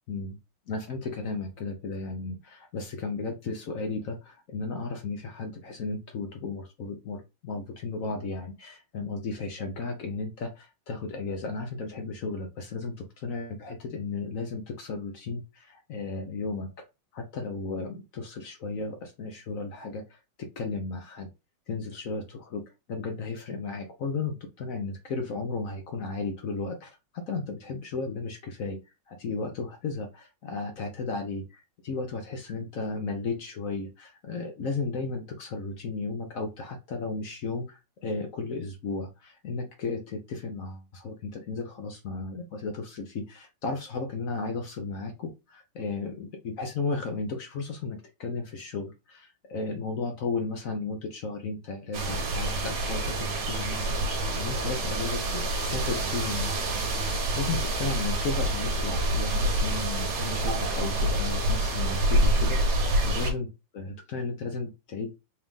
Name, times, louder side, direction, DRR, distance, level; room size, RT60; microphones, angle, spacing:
voice 1, 0.7-16.7 17.1-20.2 20.6-21.3 21.7-22.6 22.9-28.8 29.1-56.6 57.3-63.5 63.7-65.2, left 4 dB, 60° left, 4 dB, 0.9 m, -34 dB
sound 1, 51.9-63.3, right 1 dB, 60° right, 1.7 m, -27 dB
4.4 x 2.5 x 3.6 m, 0.26 s
omnidirectional pair, 2.2 m